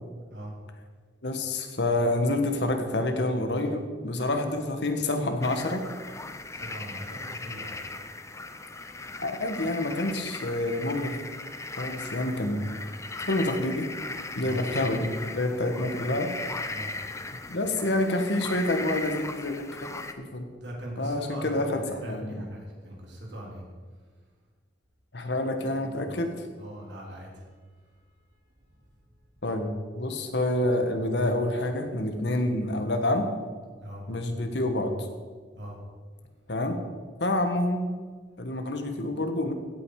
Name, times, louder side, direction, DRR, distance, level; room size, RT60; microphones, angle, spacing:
voice 1, 1.2-5.8 9.2-11.2 11.8-12.7 13.3-13.9 14.3-16.3 17.5-20.5 21.0-22.4 25.1-26.3 29.4-33.3 34.1-34.9 36.5-36.8 37.2-37.8 38.4-39.5, left 1 dB, 75° left, 6 dB, 1.6 m, -28 dB
sound 1, 5.4-20.1, left 3 dB, 15° left, 0.7 m, -38 dB
voice 2, 6.5-7.7 14.4-14.6 16.7-16.9 20.6-23.6 26.6-27.4 33.8-34.0 35.6-35.8, equal, 85° right, -1 dB, 3.5 m, -40 dB
16.0 x 9.0 x 4.9 m, 1.5 s
head